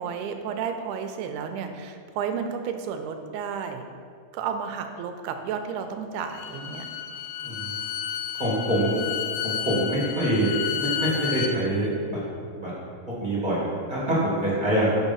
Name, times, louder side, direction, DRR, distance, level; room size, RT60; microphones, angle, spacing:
voice 1, 0.0-3.8 4.3-6.9 14.1-14.4, right 6 dB, 90° right, 6 dB, 2.6 m, -32 dB
Bowed string instrument, 6.2-11.5, left 9 dB, 85° left, 1.9 m, -31 dB
voice 2, 7.4-7.7 8.4-9.0 9.4-12.2 12.5-12.7 13.2-15.1, right 1 dB, 25° right, -7 dB, 1.0 m, -25 dB
8.2 x 6.8 x 5.5 m, 2.2 s
omnidirectional pair, 4.6 m